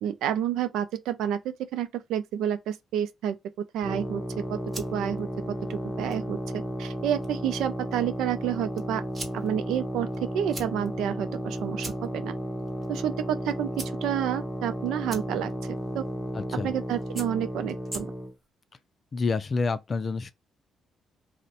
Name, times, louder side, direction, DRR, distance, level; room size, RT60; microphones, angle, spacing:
voice 1, 0.0-4.6 4.9-9.0 9.3-12.3 12.9-15.5 15.9-16.1 16.6-18.1, right 10 dB, 85° right, 0.4 m, -30 dB
sound 1, 3.8-18.3, equal, 15° left, 0.8 m, -34 dB
sound 2, 4.4-18.5, right 2 dB, 30° right, 1.0 m, -47 dB
voice 2, 16.3-16.7 19.1-20.3, left 4 dB, 40° left, 0.4 m, -28 dB
2.5 x 2.1 x 4.0 m
cardioid pair, 90°, 0 cm